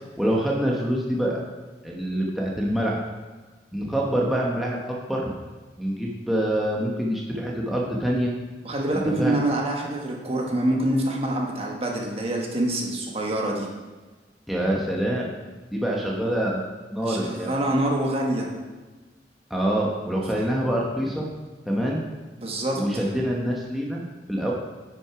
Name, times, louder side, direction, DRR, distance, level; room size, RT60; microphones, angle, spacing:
voice 1, 0.2-1.4 1.8-3.0 3.7-5.3 5.8-8.3 8.9-9.4 14.5-15.3 15.7-17.5 19.5-21.3 21.7-22.0 22.7-24.0 24.3-24.5, equal, ahead, -4 dB, 1.0 m, -25 dB
voice 2, 8.6-13.7 17.1-18.5 20.3-20.4 22.4-23.0, right 1 dB, 35° right, 0 dB, 1.4 m, -26 dB
9.8 x 6.1 x 4.7 m, 1.3 s
head